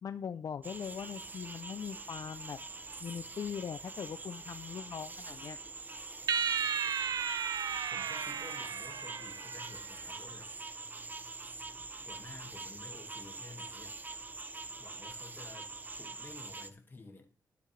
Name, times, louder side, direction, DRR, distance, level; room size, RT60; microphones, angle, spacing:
voice 1, 0.0-2.6 3.0-5.6, left 7 dB, 60° left, 0.5 m, -41 dB
sound 1, 0.6-16.7, right 3 dB, 30° right, 0.7 m, -45 dB
sound 2, 6.3-9.8, right 7 dB, 70° right, 0.6 m, -34 dB
voice 2, 7.7-10.5 12.0-14.0 14.8-17.3, left 3 dB, 30° left, 1.9 m, -52 dB
12.0 x 10.5 x 3.3 m
wide cardioid pair, 115°, 7 cm